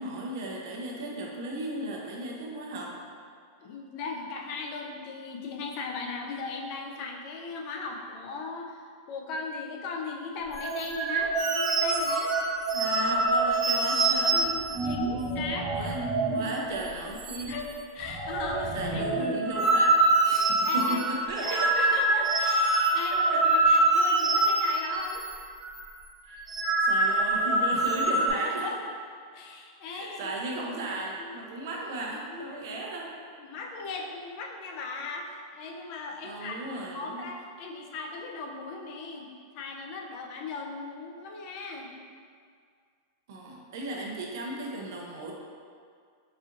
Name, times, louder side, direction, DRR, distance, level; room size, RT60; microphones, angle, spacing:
voice 1, 0.0-2.9 12.7-14.4 15.7-17.6 18.5-20.0 20.2-21.7 23.1-23.4 26.2-26.4 26.8-28.6 29.9-33.1 36.2-37.2 43.3-45.3, right 2 dB, 70° right, -1 dB, 0.6 m, -36 dB
voice 2, 3.6-8.8 9.1-12.3 14.8-15.7 17.5-19.1 20.3-21.1 21.4-25.3 28.3-28.9 29.3-30.3 31.2-31.3 32.3-32.5 33.4-36.6 36.9-39.3 39.5-41.9, left 4 dB, 40° left, 1 dB, 0.4 m, -38 dB
sound 1, 10.5-16.5 16.8-16.9 17.2-17.7 18.0-25.4 25.6-25.9 26.3-28.3, right 2 dB, 20° right, 0.4 m, -25 dB
4.1 x 2.4 x 2.5 m, 2.1 s
supercardioid pair, 145°, 2 cm